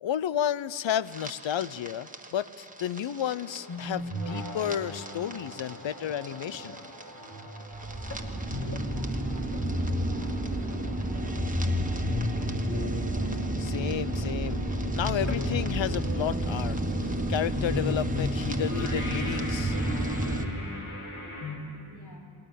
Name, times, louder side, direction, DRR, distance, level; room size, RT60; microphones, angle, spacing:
voice 1, 0.0-6.8 13.6-19.8, left 10 dB, 70° left, 18 dB, 0.6 m, -32 dB
sound 1, 1.1-20.4, right 1 dB, 15° right, 1.6 m, -32 dB
sound 2, 3.2-21.6, left 2 dB, 90° left, 2.9 m, -36 dB
sound 3, 6.0-8.9 9.5-16.8 17.2-17.4 17.7-18.0 18.7-18.8, left 3 dB, 30° left, 2.0 m, -49 dB
voice 2, 8.0-12.9 21.2-22.2, equal, 55° left, 1 dB, 4.5 m, -51 dB
19.5 x 17.5 x 8.3 m, 2.6 s
cardioid pair, 45°, 48 cm